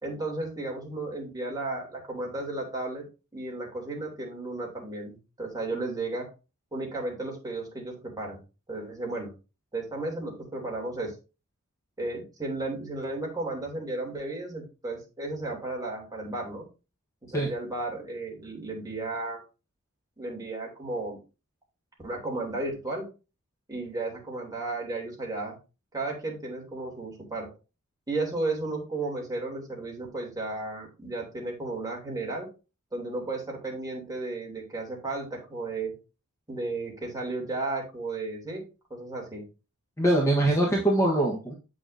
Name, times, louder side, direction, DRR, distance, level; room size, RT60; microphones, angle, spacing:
voice 1, 0.0-3.0 3.3-6.2 6.7-8.4 8.7-9.3 9.7-11.1 12.0-16.7 17.3-19.4 20.2-21.2 22.0-23.1 23.7-25.6 25.9-27.5 28.1-32.5 32.9-35.9 36.5-38.6 38.9-39.4, right 2 dB, 15° right, -2 dB, 2.8 m, -34 dB
voice 2, 40.0-41.5, right 1 dB, 15° left, -3 dB, 1.2 m, -23 dB
7.9 x 6.3 x 2.6 m, 0.31 s
head